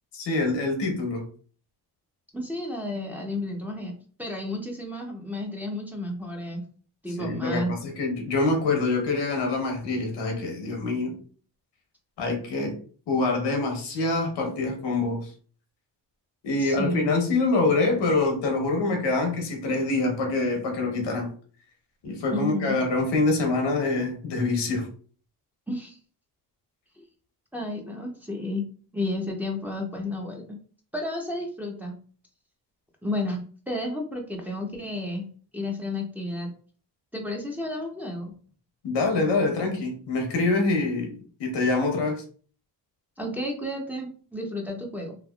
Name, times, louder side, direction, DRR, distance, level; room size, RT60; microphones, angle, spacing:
voice 1, 0.1-1.2 7.2-11.1 12.2-12.7 13.1-15.3 16.4-21.3 22.0-24.9 38.8-42.2, left 3 dB, 90° left, 2 dB, 1.1 m, -25 dB
voice 2, 2.3-3.9 4.2-6.6 7.0-7.7 16.6-17.3 22.3-22.8 25.7-26.0 27.0-27.1 27.5-28.6 28.9-30.4 30.9-32.0 33.0-35.3 35.5-36.5 37.1-38.3 43.2-45.2, left 1 dB, 5° right, -1 dB, 0.7 m, -32 dB
3.3 x 2.3 x 2.3 m, 0.42 s
cardioid pair, 95°, 41 cm